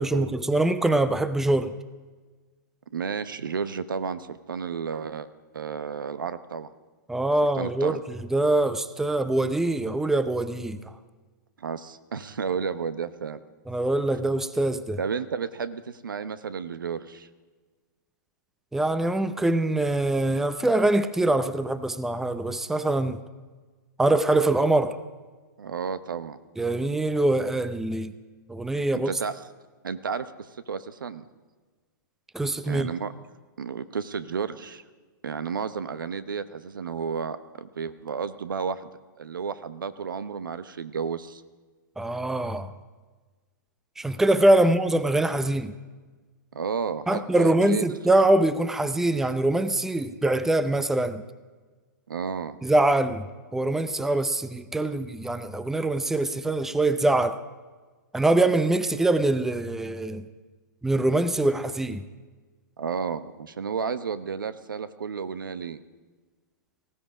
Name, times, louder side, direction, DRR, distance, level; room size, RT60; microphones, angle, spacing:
voice 1, 0.0-1.7 7.1-10.8 13.7-15.0 18.7-23.2 24.0-25.0 26.6-28.1 28.5-29.1 32.3-32.9 42.0-42.7 44.0-45.7 47.1-51.2 52.6-53.3 53.5-57.4 58.1-60.2 60.8-62.0, right 2 dB, 5° right, 13 dB, 0.5 m, -23 dB
voice 2, 2.9-5.3 5.5-6.7 7.6-8.0 11.6-13.4 15.0-17.3 25.6-26.4 28.9-29.4 29.8-30.3 30.7-31.2 32.7-33.1 33.6-34.8 35.2-38.9 39.2-41.4 46.5-47.8 52.1-52.6 62.8-65.8, right 6 dB, 85° right, 13 dB, 0.9 m, -32 dB
18.5 x 15.5 x 4.9 m, 1.4 s
hypercardioid pair, 125°, 11 cm